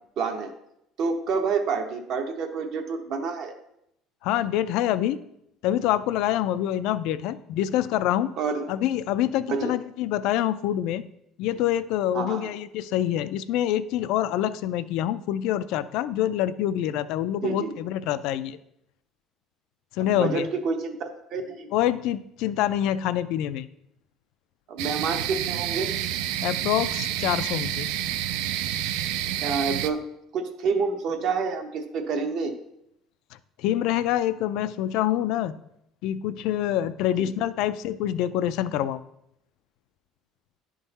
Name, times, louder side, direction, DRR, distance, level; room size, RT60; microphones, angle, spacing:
voice 1, 0.2-0.5 1.0-3.5 8.4-8.7 9.5-9.7 12.1-12.5 17.4-17.7 20.0-21.7 24.7-25.9 29.4-30.0 30.3-32.5 37.2-37.3, right 5 dB, 50° right, 6 dB, 0.8 m, -28 dB
voice 2, 4.2-5.2 5.6-8.3 8.7-11.0 11.4-18.6 19.9-20.5 21.7-23.7 26.4-27.9 33.6-35.5 36.0-39.0, left 12 dB, 65° left, 14 dB, 0.3 m, -26 dB
sound 1, 24.8-29.9, right 12 dB, 80° right, 0.3 m, -29 dB
10.5 x 3.7 x 4.0 m, 0.79 s
cardioid pair, 170°, 0 cm